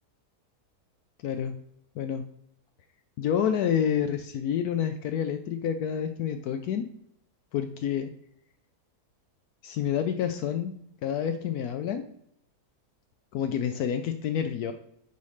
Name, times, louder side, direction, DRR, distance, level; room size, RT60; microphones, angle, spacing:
voice 1, 1.2-1.5 2.0-2.2 3.2-6.9 7.5-8.1 9.6-10.7 11.0-12.1 13.3-14.7, left 8 dB, 75° left, 7 dB, 1.1 m, -28 dB
8.1 x 3.2 x 5.5 m, 0.72 s
omnidirectional pair, 1.7 m